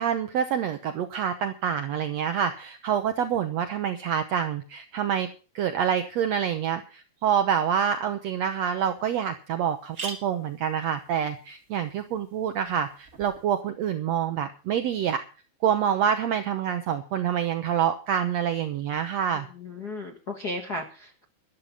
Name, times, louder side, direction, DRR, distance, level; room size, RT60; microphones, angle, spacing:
voice 1, 0.0-5.3 5.5-15.2 15.6-19.5, right 8 dB, 80° right, 8 dB, 1.5 m, -27 dB
sound 1, 8.4-8.5 8.9-9.0 9.2-9.3 9.7-13.4, right 4 dB, 30° right, 2.1 m, -43 dB
voice 2, 19.5-21.2, left 1 dB, 45° left, 1 dB, 1.2 m, -35 dB
12.5 x 12.5 x 5.4 m, 0.35 s
omnidirectional pair, 4.3 m